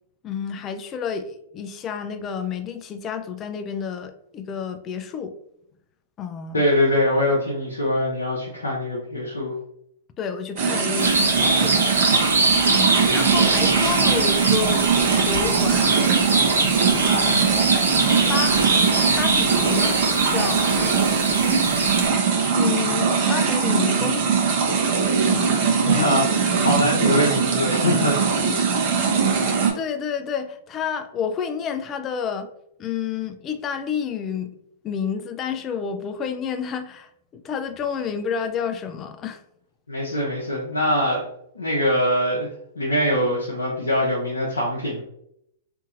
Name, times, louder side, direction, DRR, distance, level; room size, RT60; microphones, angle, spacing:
voice 1, 0.2-5.3 6.2-6.6 10.2-11.8 12.6-14.8 15.2-16.0 17.0-17.5 18.3-18.6 19.2-20.0 20.3-20.7 22.5-24.2 25.3-25.6 25.9-26.0 29.7-32.5 32.8-34.6 34.8-39.4, left 7 dB, 30° left, 8 dB, 0.3 m, -29 dB
voice 2, 6.5-9.5 25.8-26.3 26.6-28.5 39.9-41.3 41.5-42.5 42.8-45.0, left 1 dB, 85° left, -4 dB, 0.6 m, -23 dB
sound 1, 10.6-29.7, right 5 dB, 50° right, 0.7 m, -21 dB
sound 2, 11.0-22.1, right 2 dB, 85° right, 0.7 m, -23 dB
2.7 x 2.7 x 2.5 m, 0.73 s
hypercardioid pair, 110°, 0 cm